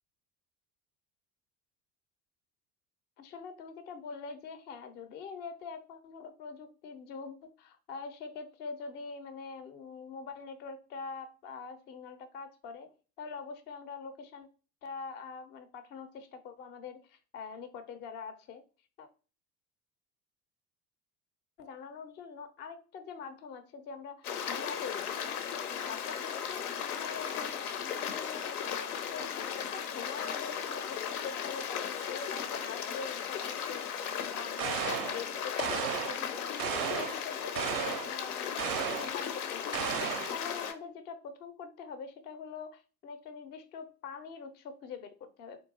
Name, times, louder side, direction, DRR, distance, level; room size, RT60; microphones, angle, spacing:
voice 1, 3.2-12.9 13.2-14.5 14.8-18.6 19.0-19.1 21.6-25.5 25.9-26.7 27.0-27.5 27.8-36.6 37.0-38.7 38.9-45.6, left 5 dB, 25° left, 10 dB, 0.3 m, -44 dB
Stream, 24.2-40.7, left 8 dB, 75° left, 0.5 m, -36 dB
sound 1, 34.6-35.2 35.6-36.2 36.6-37.2 37.5-38.1 38.6-39.1 39.7-40.4, right 9 dB, 45° right, 0.4 m, -34 dB
3.6 x 2.3 x 2.6 m, 0.36 s
figure-of-eight pair, 65°, 45 cm